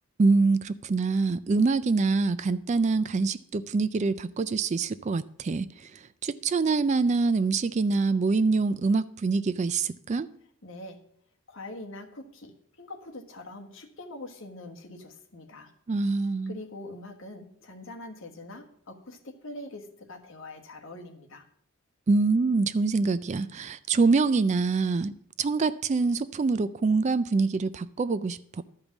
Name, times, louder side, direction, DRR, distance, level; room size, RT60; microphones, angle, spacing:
voice 1, 0.2-5.9 6.2-10.3 15.9-16.6 22.1-25.1 25.4-28.6, right 4 dB, 30° right, 15 dB, 0.3 m, -25 dB
voice 2, 10.6-11.0 11.5-15.7 16.5-21.4, left 2 dB, 60° left, 3 dB, 1.4 m, -43 dB
12.0 x 5.2 x 7.1 m, 0.65 s
head